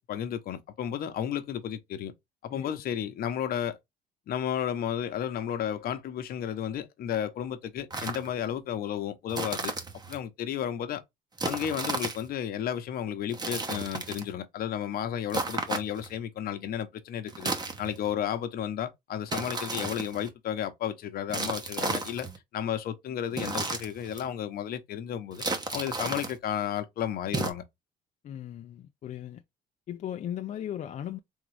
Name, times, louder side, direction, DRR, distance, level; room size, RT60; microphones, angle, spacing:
voice 1, 0.0-2.1 2.4-3.8 4.3-9.7 10.1-11.0 11.4-22.3 22.5-25.4 25.7-27.6, left 9 dB, 65° left, 0.9 m, -33 dB
sound 1, 7.9-8.3 9.3-10.2 11.4-12.3 13.3-14.3 15.3-16.2 17.3-18.1 19.3-20.3 21.3-22.4 23.3-24.3 25.3-26.4 27.3-27.5, right 3 dB, 25° right, 1.0 m, -33 dB
voice 2, 28.2-29.4 29.9-31.2, left 10 dB, 45° left, 0.4 m, -37 dB
3.6 x 3.6 x 3.3 m
cardioid pair, 110°, 17 cm